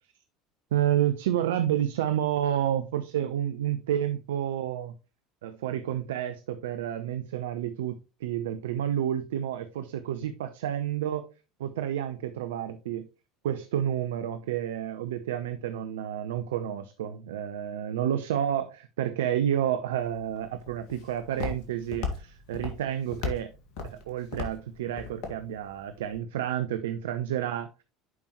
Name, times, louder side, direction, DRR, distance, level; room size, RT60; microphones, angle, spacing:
voice 1, 0.7-4.9 5.4-7.9 8.2-11.2 11.6-13.1 13.4-23.5 23.8-27.8, right 10 dB, 70° right, 0.6 m, -30 dB
Walk footsteps, 20.0-26.2, left 4 dB, 60° left, 1.9 m, -38 dB
11.0 x 5.3 x 3.1 m
figure-of-eight pair, 70°, 0 cm